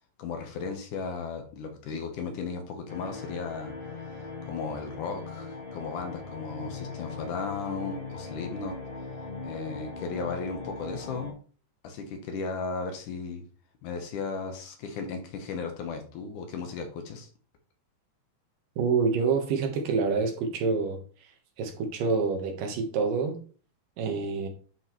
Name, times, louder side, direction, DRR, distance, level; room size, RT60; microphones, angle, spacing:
voice 1, 0.2-3.7 4.5-8.8 9.4-11.3 11.8-13.4 13.8-17.3, left 4 dB, 70° left, 2.4 m, -35 dB
sound 1, 2.9-11.3, left 3 dB, 50° left, 0.6 m, -40 dB
voice 2, 18.8-21.0 21.6-23.4 24.0-24.5, right 5 dB, 75° right, 2.7 m, -27 dB
9.7 x 5.4 x 3.1 m
omnidirectional pair, 4.0 m